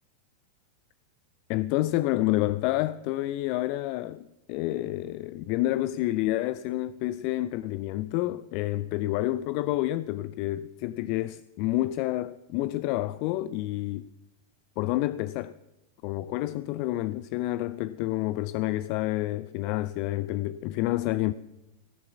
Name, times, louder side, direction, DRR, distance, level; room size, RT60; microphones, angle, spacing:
voice 1, 1.5-14.0 14.8-15.6 16.0-21.3, left 16 dB, 45° left, 0.4 m, -29 dB
17.5 x 6.8 x 7.2 m
figure-of-eight pair, 90°, 0 cm